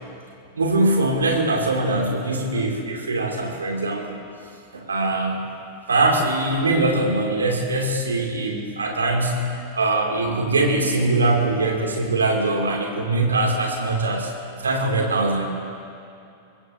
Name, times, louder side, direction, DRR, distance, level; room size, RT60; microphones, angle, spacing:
voice 1, 0.6-4.2 4.7-5.5 5.9-9.5 9.7-15.5, right 2 dB, 75° right, 1 dB, 2.4 m, -22 dB
23.5 x 20.0 x 2.7 m, 2.6 s
figure-of-eight pair, 90°, 0 cm